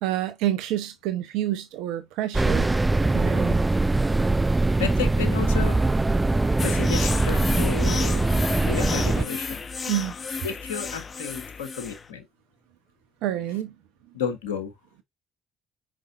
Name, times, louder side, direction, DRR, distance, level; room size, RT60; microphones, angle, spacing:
voice 1, 0.0-2.7 3.1-3.6 9.9-10.1 13.2-13.7, right 13 dB, 75° right, 0.9 m, -28 dB
sound 1, 2.3-9.2, right 2 dB, 15° right, 0.6 m, -22 dB
voice 2, 4.8-5.8 6.6-8.3 8.6-9.6 10.4-12.2 14.1-14.7, left 7 dB, 85° left, 1.4 m, -32 dB
sound 2, 6.6-12.1, left 5 dB, 40° left, 1.0 m, -33 dB
7.6 x 5.5 x 2.6 m
hypercardioid pair, 55°, 0 cm